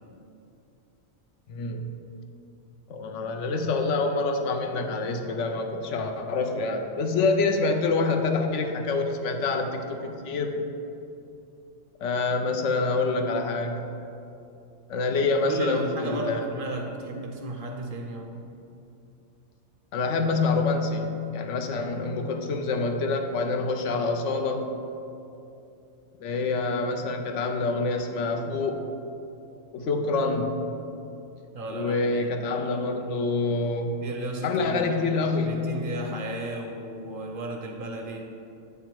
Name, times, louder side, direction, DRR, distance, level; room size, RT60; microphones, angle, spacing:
voice 1, 1.5-1.9 2.9-10.6 12.0-13.9 14.9-16.5 19.9-24.7 26.2-28.8 29.7-30.6 31.7-34.0 34.4-35.6, left 3 dB, 85° left, 4 dB, 1.0 m, -26 dB
voice 2, 15.5-18.5 26.0-26.1 29.8-29.9 31.5-32.3 34.0-35.0 35.5-38.3, right 1 dB, 60° right, 2 dB, 0.6 m, -34 dB
8.1 x 3.5 x 4.5 m, 2.7 s
omnidirectional pair, 1.2 m